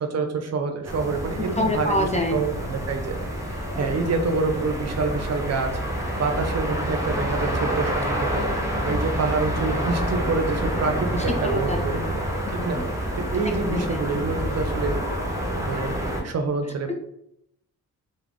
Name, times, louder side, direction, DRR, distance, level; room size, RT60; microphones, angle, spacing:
voice 1, 0.0-3.2 3.7-5.8 6.2-8.5 8.8-12.0 12.5-12.8 13.2-15.0 15.6-15.9 16.2-16.9, right 4 dB, 45° right, 5 dB, 0.5 m, -27 dB
sound 1, 0.8-16.2, equal, 10° right, 0.7 m, -28 dB
voice 2, 1.6-2.4 3.7-3.8 11.4-12.1 12.6-13.0 13.4-14.0 16.9-17.0, left 1 dB, 20° left, 2 dB, 0.3 m, -27 dB
2.3 x 2.1 x 3.4 m, 0.76 s
cardioid pair, 55°, 37 cm